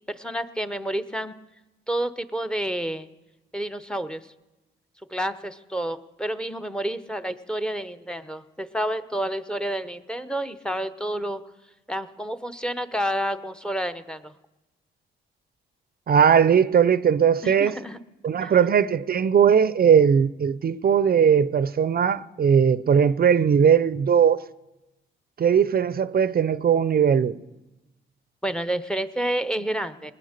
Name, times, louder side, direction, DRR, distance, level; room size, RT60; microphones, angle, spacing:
voice 1, 0.1-1.3 1.9-3.1 3.5-4.2 5.1-11.4 11.9-14.3 17.4-18.0 18.4-18.5 28.4-30.1, right 1 dB, 5° left, 0.9 m, -29 dB
voice 2, 16.1-17.8 18.2-24.4 25.4-27.4, right 7 dB, 45° right, 0.6 m, -19 dB
19.5 x 8.9 x 6.7 m
supercardioid pair, 60°, 21 cm